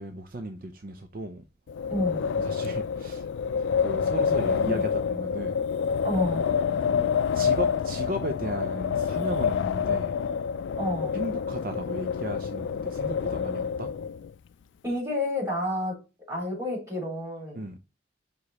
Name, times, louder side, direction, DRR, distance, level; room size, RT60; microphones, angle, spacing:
voice 1, 0.0-1.4 2.4-3.3 3.6-5.6 6.8-10.2 11.1-13.9 17.5-17.8, right 1 dB, 50° right, 0.6 m, -36 dB
Wind, 1.7-14.3, left 6 dB, 90° left, 0.3 m, -27 dB
voice 2, 1.9-2.2 4.6-4.8 6.0-6.5 10.8-11.2 14.8-16.0 16.3-17.6, left 1 dB, 15° right, 3.6 m, -30 dB
5.5 x 4.9 x 4.1 m
head